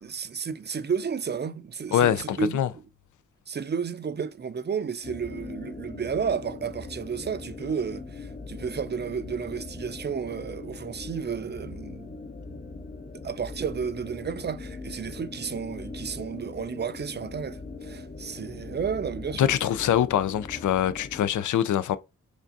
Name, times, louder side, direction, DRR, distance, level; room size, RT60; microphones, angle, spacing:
voice 1, 0.0-2.6 3.5-12.2 13.2-19.5, right 6 dB, 35° right, 0.5 m, -32 dB
voice 2, 1.9-2.7 19.4-22.0, left 10 dB, 70° left, 0.5 m, -24 dB
sound 1, 5.0-21.3, left 3 dB, 25° left, 0.7 m, -41 dB
5.0 x 2.3 x 2.6 m
cardioid pair, 45°, 32 cm